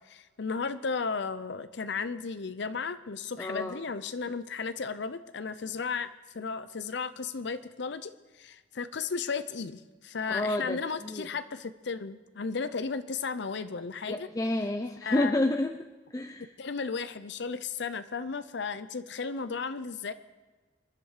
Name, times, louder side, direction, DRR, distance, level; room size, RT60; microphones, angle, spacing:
voice 1, 0.0-6.1 6.3-14.3 15.0-15.4 16.6-20.1, left 5 dB, 70° left, 13 dB, 0.7 m, -34 dB
voice 2, 3.4-3.8 10.3-11.3 14.1-15.8 16.1-16.5, left 1 dB, 20° left, 6 dB, 0.5 m, -30 dB
25.0 x 11.0 x 4.9 m, 1.3 s
head